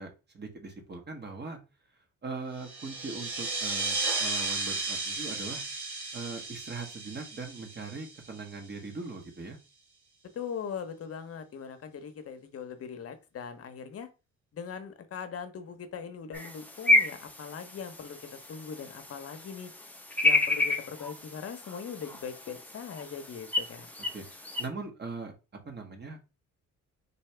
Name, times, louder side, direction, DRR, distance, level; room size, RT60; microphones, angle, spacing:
voice 1, 0.0-1.6 2.2-5.6 6.1-9.6 24.1-25.3 25.6-26.3, right 3 dB, 35° right, 4 dB, 1.2 m, -40 dB
sound 1, 2.6-8.7, right 3 dB, 75° right, 1.7 m, -34 dB
voice 2, 10.3-14.1 14.5-18.2 18.5-19.7 20.2-23.9, left 7 dB, 50° left, 9 dB, 0.8 m, -40 dB
sound 2, 16.3-24.7, left 2 dB, 5° left, 0.6 m, -30 dB
4.1 x 2.7 x 3.3 m, 0.29 s
cardioid pair, 90°, 30 cm